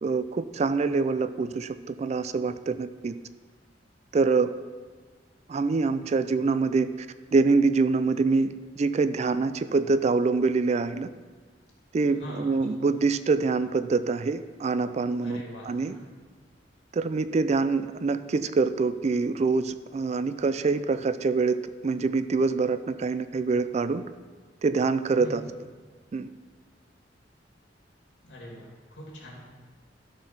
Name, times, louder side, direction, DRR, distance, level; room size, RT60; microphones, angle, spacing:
voice 1, 0.0-3.1 4.1-4.5 5.5-6.9 7.3-11.1 11.9-15.9 16.9-21.6 21.8-24.0 24.6-25.4 26.1-26.3, right 4 dB, 40° right, 12 dB, 0.3 m, -25 dB
voice 2, 12.1-12.6 15.2-16.1 25.2-25.5 28.2-29.4, equal, 80° left, -3 dB, 2.7 m, -42 dB
12.5 x 4.5 x 5.9 m, 1.4 s
head